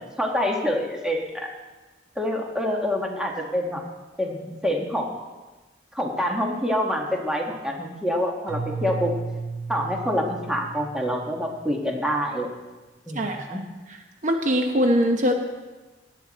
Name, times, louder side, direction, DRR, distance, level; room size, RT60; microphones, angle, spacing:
voice 1, 0.0-1.5 2.2-3.8 4.2-5.1 5.9-9.1 9.7-12.5 13.1-13.6, equal, 5° right, 0 dB, 1.5 m, -26 dB
Keyboard (musical), 8.5-11.6, right 4 dB, 70° right, 1.7 m, -34 dB
voice 2, 13.2-13.6 14.2-15.3, equal, 45° right, 4 dB, 1.0 m, -22 dB
17.5 x 9.3 x 4.2 m, 1.2 s
head